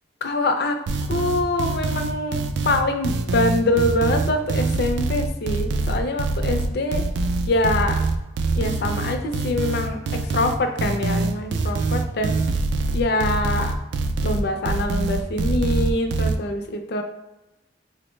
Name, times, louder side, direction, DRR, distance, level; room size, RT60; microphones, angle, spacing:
voice 1, 0.2-0.8 1.1-2.4 2.6-7.0 7.5-8.1 8.5-12.3 12.9-13.7 14.2-17.0, left 2 dB, 65° left, 5 dB, 0.4 m, -24 dB
sound 1, 0.9-16.4, right 3 dB, 75° right, 0.3 m, -24 dB
3.8 x 2.0 x 3.1 m, 0.98 s
head